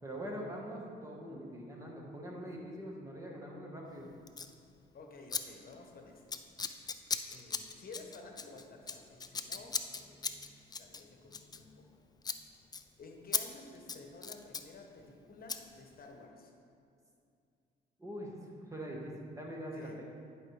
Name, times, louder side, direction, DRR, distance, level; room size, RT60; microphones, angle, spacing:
voice 1, 0.0-4.1 18.0-20.0, equal, 15° right, -2 dB, 1.3 m, -43 dB
Scissors, 4.3-4.5 5.3-5.4 5.7-5.9 6.3-11.9 12.2-12.4 12.7-12.8 13.3-13.4 13.7-14.7 15.5-15.6, left 5 dB, 20° left, 0.4 m, -38 dB
voice 2, 4.9-6.4 7.3-10.4 10.8-11.8 13.0-16.5 19.7-20.0, left 3 dB, 45° left, 2 dB, 1.1 m, -52 dB
10.5 x 5.0 x 3.3 m, 2.4 s
cardioid pair, 90°, 20 cm